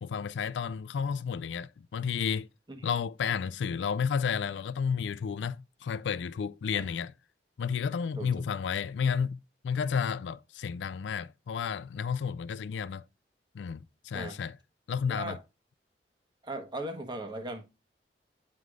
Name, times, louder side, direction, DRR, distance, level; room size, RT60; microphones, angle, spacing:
voice 1, 0.0-2.5 2.8-7.1 7.6-13.0 13.5-14.6 14.9-15.4, left 6 dB, 85° left, 0.3 m, -32 dB
voice 2, 15.1-15.4 16.4-17.6, right 1 dB, 25° right, 1.1 m, -38 dB
9.2 x 4.8 x 2.4 m
head